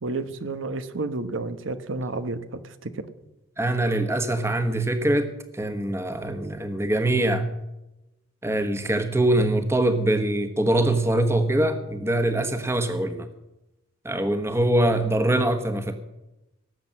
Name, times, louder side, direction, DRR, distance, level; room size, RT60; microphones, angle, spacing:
voice 1, 0.0-3.0, right 2 dB, 85° right, 11 dB, 1.1 m, -31 dB
voice 2, 3.6-7.5 8.4-13.3 14.0-15.9, right 1 dB, 15° right, 8 dB, 1.3 m, -23 dB
18.5 x 7.9 x 7.5 m, 0.94 s
head